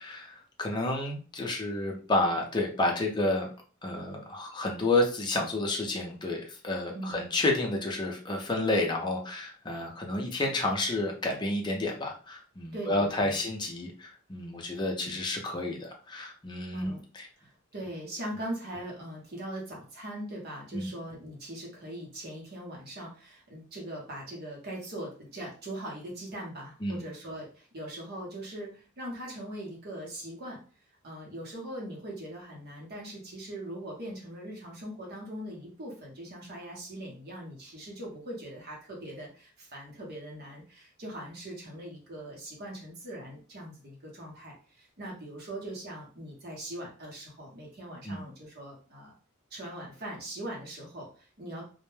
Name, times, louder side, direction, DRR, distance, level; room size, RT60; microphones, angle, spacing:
voice 1, 0.0-3.5 3.8-17.3 20.7-20.9 26.8-27.0 48.1-48.2, left 2 dB, 20° left, 1 dB, 0.5 m, -30 dB
voice 2, 12.7-13.4 15.0-15.2 16.7-17.0 17.4-30.6 31.0-49.1 49.5-51.6, right 1 dB, 50° right, -2 dB, 0.8 m, -41 dB
2.1 x 2.1 x 3.1 m, 0.38 s
head